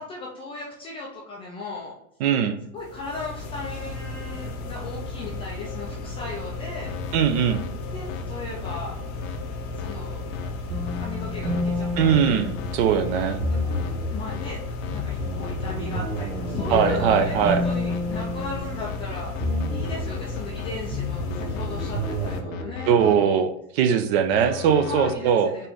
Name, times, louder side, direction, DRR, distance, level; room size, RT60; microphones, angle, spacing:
voice 1, 0.0-1.9 2.7-6.9 7.9-9.0 9.8-10.2 11.0-12.4 13.5-13.8 14.1-23.4 24.8-25.7, left 3 dB, 15° left, -3 dB, 0.3 m, -36 dB
voice 2, 2.2-2.6 7.1-7.6 12.0-13.4 16.7-17.6 22.9-23.5 23.8-25.5, right 8 dB, 45° right, 9 dB, 0.6 m, -20 dB
sound 1, 2.8-22.4, left 3 dB, 35° left, 0.8 m, -34 dB
sound 2, 6.8-7.2 7.5-7.7 8.1-8.2 8.6-8.8 9.2-9.4 9.8-9.9 10.3-10.5 10.9-11.1 11.4-11.6 12.0-12.2 12.6-12.8 13.1-13.4 13.7-13.9 14.3-14.5 14.8-15.0 15.4-16.2 16.6-18.5 18.9-20.7 21.3-23.1 24.3-25.2, left 10 dB, 65° left, 0.7 m, -36 dB
sound 3, 10.7-12.9 13.4-14.2 14.9-19.0 19.4-20.2 20.9-22.7, left 1 dB, 75° right, 1.3 m, -30 dB
4.3 x 2.6 x 3.5 m, 0.76 s
hypercardioid pair, 110°, 42 cm